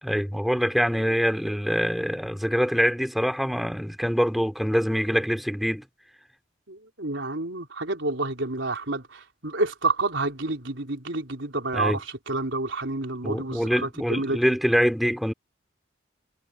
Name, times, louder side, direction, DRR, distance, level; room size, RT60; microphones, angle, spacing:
voice 1, 0.0-5.8 11.7-12.0 13.2-15.3, equal, ahead, 2.6 m, -24 dB
voice 2, 6.7-14.6, right 2 dB, 70° right, 3.8 m, -29 dB
head